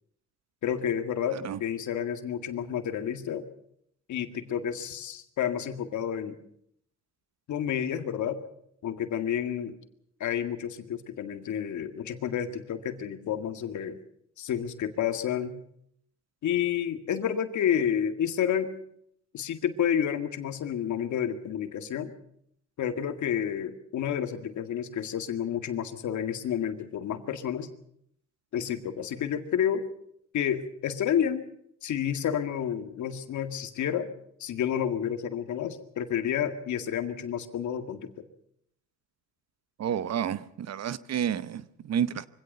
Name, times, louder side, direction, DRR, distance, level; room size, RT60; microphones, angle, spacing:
voice 1, 0.6-3.5 4.1-6.4 7.5-8.4 8.8-9.8 10.2-14.0 14.4-15.6 16.4-18.7 19.3-22.1 22.8-27.7 28.5-29.8 30.3-31.4 31.8-34.1 34.4-38.2, left 9 dB, 70° left, 8 dB, 2.0 m, -30 dB
voice 2, 1.3-1.6 39.8-42.3, right 9 dB, 60° right, 16 dB, 0.9 m, -30 dB
23.5 x 17.0 x 6.7 m, 0.71 s
cardioid pair, 90°, 30 cm